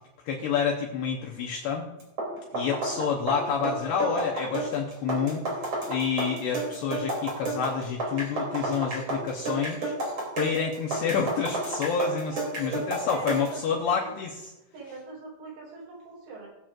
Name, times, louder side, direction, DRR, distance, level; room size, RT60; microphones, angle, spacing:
voice 1, 0.3-1.9 2.5-9.9 10.4-14.5, left 6 dB, 80° left, -1 dB, 2.4 m, -28 dB
sound 1, 2.0-13.6, right 2 dB, 30° right, 3.0 m, -31 dB
voice 2, 12.2-14.1 14.7-16.5, right 3 dB, 75° right, -6 dB, 6.7 m, -42 dB
21.0 x 7.4 x 2.5 m, 0.97 s
omnidirectional pair, 5.9 m